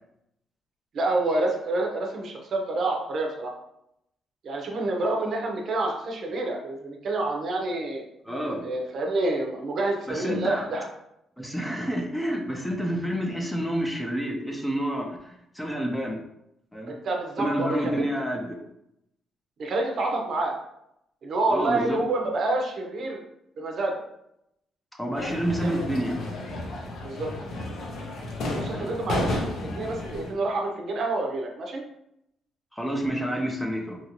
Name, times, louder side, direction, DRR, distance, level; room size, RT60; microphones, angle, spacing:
voice 1, 0.9-3.5 4.4-8.0 8.6-10.9 16.9-18.0 19.6-20.5 21.2-23.2 23.6-24.0 25.6-25.9 27.0-27.3 28.5-31.8, right 2 dB, 60° right, 1 dB, 0.6 m, -28 dB
voice 2, 8.3-8.7 10.1-10.6 11.4-16.2 16.7-16.9 17.4-18.6 21.5-22.0 25.0-26.2 28.7-28.9 32.7-34.0, equal, 5° left, 1 dB, 0.6 m, -29 dB
sound 1, 25.1-30.3, left 1 dB, 70° left, 0.7 m, -32 dB
2.9 x 2.6 x 2.9 m, 0.79 s
cardioid pair, 90°, 0 cm